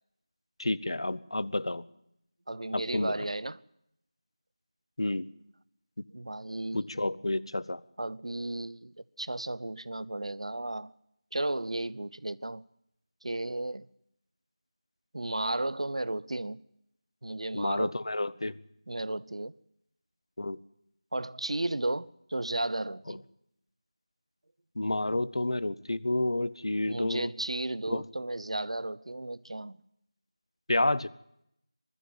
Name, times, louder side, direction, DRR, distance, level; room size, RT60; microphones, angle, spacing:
voice 1, 0.6-1.8 2.7-3.1 5.0-5.3 6.7-7.8 17.5-18.6 20.4-20.6 24.8-27.3 27.9-28.1 30.7-31.1, left 2 dB, 60° left, 0.9 m, -30 dB
voice 2, 2.5-3.6 6.1-6.8 8.0-8.9 9.2-10.9 11.3-12.6 13.2-13.9 15.1-16.6 17.2-17.9 18.9-19.5 21.1-23.2 26.9-29.8, right 1 dB, 75° right, 0.8 m, -34 dB
21.5 x 13.5 x 9.3 m
figure-of-eight pair, 175°, 3 cm